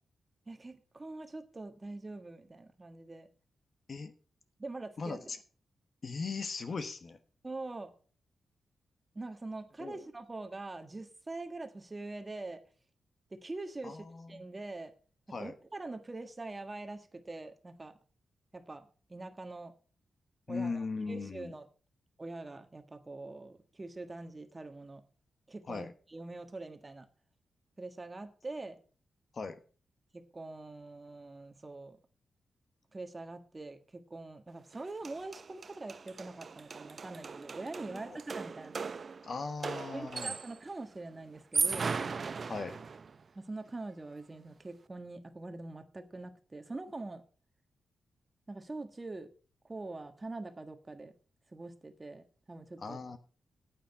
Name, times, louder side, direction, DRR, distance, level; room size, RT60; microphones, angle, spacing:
voice 1, 0.5-3.3 4.6-5.3 7.4-7.9 9.1-12.6 13.3-14.9 15.3-18.0 18.5-19.7 20.5-21.7 22.2-25.0 25.5-27.1 27.8-28.8 30.1-32.0 32.9-38.9 39.9-42.0 43.3-47.2 48.5-49.3 49.6-51.1 51.5-53.0, right 2 dB, 25° right, 8 dB, 1.4 m, -44 dB
voice 2, 5.0-5.4 6.0-7.2 9.8-10.0 13.8-14.4 15.3-15.5 20.5-21.5 25.7-25.9 29.3-29.6 37.9-38.2 39.2-40.3 42.5-42.8 52.8-53.2, left 4 dB, 45° left, 10 dB, 1.1 m, -38 dB
sound 1, 34.7-34.8 35.0-40.7 41.3-43.2, right 5 dB, 45° right, 0.5 m, -37 dB
9.2 x 8.8 x 5.9 m, 0.40 s
wide cardioid pair, 115°, 0 cm